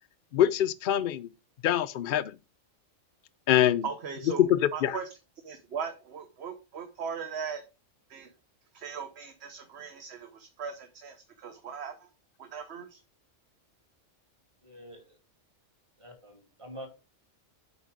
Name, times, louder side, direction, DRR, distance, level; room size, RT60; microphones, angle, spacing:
voice 1, 0.3-1.3 1.6-2.3 3.5-3.8 4.4-5.0, left 11 dB, 60° left, 0.5 m, -24 dB
voice 2, 3.8-5.1 5.4-7.6 8.1-8.3 8.7-12.1 12.4-13.0, right 6 dB, 60° right, 1.2 m, -39 dB
voice 3, 14.6-15.2 16.0-16.9, equal, 25° right, 2.7 m, -46 dB
8.1 x 5.0 x 4.8 m
omnidirectional pair, 1.3 m